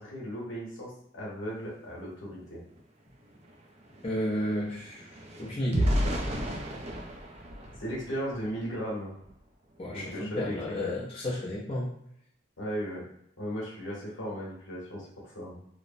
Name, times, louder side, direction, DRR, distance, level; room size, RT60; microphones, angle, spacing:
voice 1, 0.0-2.6 7.8-9.1 9.9-10.7 12.6-13.0 13.4-15.6, equal, 75° left, -5 dB, 1.1 m, -36 dB
sound 1, 2.8-2.9 3.1-8.6 9.1-9.4 9.7-9.9, equal, 35° right, 0.4 m, -33 dB
voice 2, 4.0-5.0 5.4-5.9 9.8-11.9, left 1 dB, 30° left, -8 dB, 0.7 m, -32 dB
3.0 x 2.1 x 2.6 m, 0.75 s
head